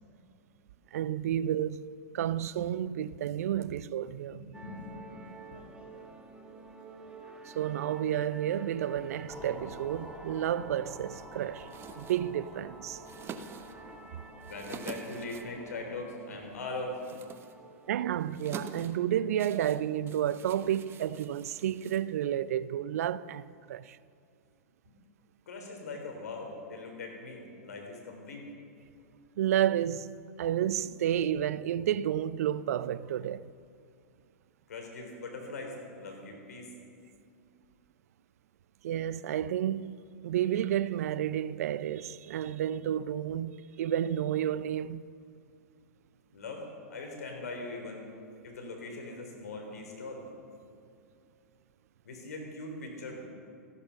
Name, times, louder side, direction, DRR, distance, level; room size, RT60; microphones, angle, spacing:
voice 1, 0.9-1.9 2.1-4.4 7.5-13.0 17.9-24.0 29.4-33.4 38.8-40.0 40.2-45.0, right 11 dB, 70° right, 0.5 m, -31 dB
voice 2, 4.3-5.6 14.4-17.0 24.9-25.0 25.5-28.4 34.7-36.7 46.3-48.1 48.4-50.2 52.0-53.2, left 2 dB, 75° left, 3.8 m, -41 dB
sound 1, 4.5-19.1, right 2 dB, 10° right, 1.8 m, -50 dB
sound 2, 9.3-16.1, left 1 dB, 5° left, 1.8 m, -50 dB
sound 3, 11.6-22.6, right 6 dB, 30° right, 1.1 m, -48 dB
14.0 x 12.0 x 7.0 m
hypercardioid pair, 105°, 8 cm